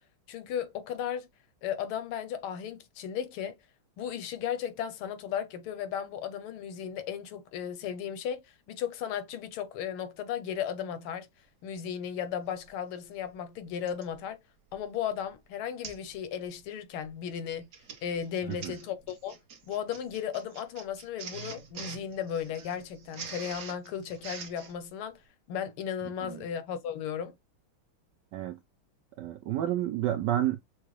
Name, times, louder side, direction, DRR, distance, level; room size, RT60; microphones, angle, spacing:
voice 1, 0.3-1.3 1.6-3.6 4.0-11.3 11.6-14.4 14.7-17.7 18.0-19.4 19.7-25.2 25.5-27.3, left 8 dB, 80° left, 1.6 m, -35 dB
Printer, 12.7-12.8 13.9-14.1 14.7-15.0 15.2-15.3 15.8-16.1 16.4-16.7 17.5-24.7, right 6 dB, 50° right, 1.4 m, -45 dB
voice 2, 29.2-30.6, right 13 dB, 80° right, 1.0 m, -30 dB
6.4 x 2.2 x 3.1 m
omnidirectional pair, 2.4 m